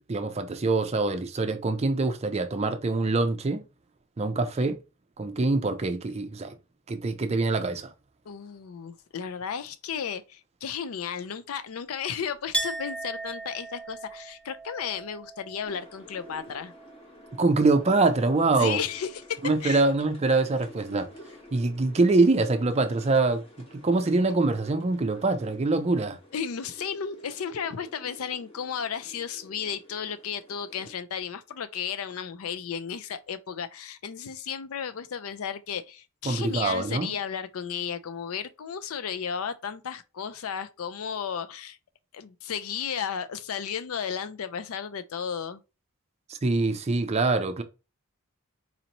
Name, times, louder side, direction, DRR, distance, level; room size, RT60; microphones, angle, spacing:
voice 1, 0.1-3.6 4.2-4.8 5.2-6.5 6.9-7.9 17.4-18.8 19.4-21.1 21.5-23.5 23.7-26.2 36.3-37.2 46.4-47.6, right 3 dB, 30° right, 0.4 m, -24 dB
voice 2, 8.3-16.7 18.5-19.8 26.3-41.8 42.1-45.6, left 7 dB, 75° left, 0.4 m, -34 dB
Chink clink, 12.5-18.1 18.3-19.2, right 2 dB, 5° left, 0.9 m, -38 dB
sound 1, 15.6-30.9, equal, 25° left, 1.1 m, -50 dB
4.2 x 2.6 x 2.9 m
head